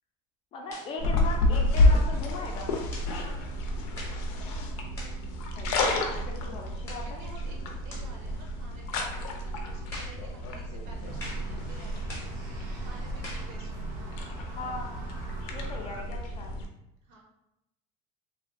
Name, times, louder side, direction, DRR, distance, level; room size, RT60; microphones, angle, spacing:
voice 1, 0.5-2.7 5.6-7.2 14.6-14.9 15.5-16.5, left 3 dB, 30° left, 1 dB, 0.4 m, -38 dB
sound 1, 0.7-0.9 1.7-2.0 2.9-3.1 3.9-4.2 4.9-5.2 5.9-6.2 6.9-7.1 7.9-8.1 8.9-9.1 9.9-10.2 11.2-11.5 12.1-12.3 13.2-13.5, left 1 dB, 15° left, 0.7 m, -42 dB
sound 2, 1.0-16.7, left 1 dB, 85° left, 0.5 m, -30 dB
voice 2, 3.1-3.5 7.0-12.3 12.6-14.5 17.0-17.2, right 2 dB, 80° right, -2 dB, 0.8 m, -52 dB
sound 3, 11.0-16.0, right 1 dB, 45° right, 0.6 m, -45 dB
2.7 x 2.1 x 2.5 m, 0.85 s
cardioid pair, 165°, 19 cm